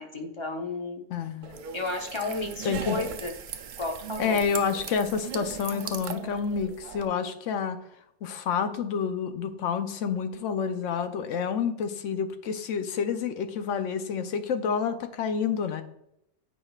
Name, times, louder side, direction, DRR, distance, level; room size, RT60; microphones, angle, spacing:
voice 1, 0.0-1.0 1.7-3.3 3.8-4.4, left 3 dB, 25° left, 2 dB, 0.8 m, -33 dB
voice 2, 1.1-1.5 2.6-3.0 4.2-7.8 8.2-15.8, left 6 dB, 85° left, 9 dB, 1.0 m, -29 dB
sound 1, 1.4-7.1, right 8 dB, 60° right, 0.5 m, -38 dB
8.5 x 5.0 x 2.4 m, 0.78 s
omnidirectional pair, 1.3 m